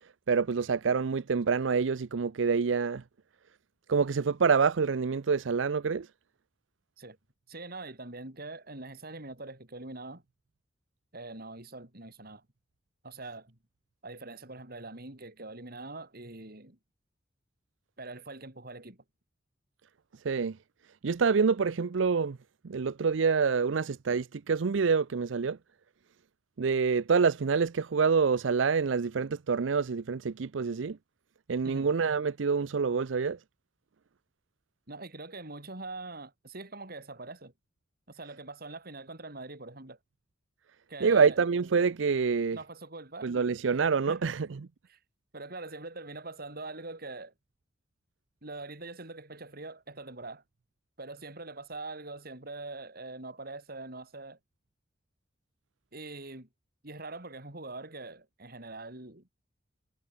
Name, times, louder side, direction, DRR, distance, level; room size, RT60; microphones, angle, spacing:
voice 1, 0.3-3.0 3.9-6.1 20.2-20.6 21.0-22.4 22.6-25.6 26.6-31.0 31.5-33.4 41.0-42.6 43.2-44.5, right 5 dB, 85° right, 0.5 m, -26 dB
voice 2, 7.5-10.2 11.1-12.4 13.0-13.6 14.0-16.8 18.0-19.0 31.6-31.9 34.9-37.5 38.1-40.0 40.9-41.4 42.5-43.3 44.1-44.3 44.9-45.0 45.3-47.3 48.4-50.4 51.0-54.4 55.9-56.5 56.8-59.3, right 2 dB, 55° right, 4.0 m, -43 dB
head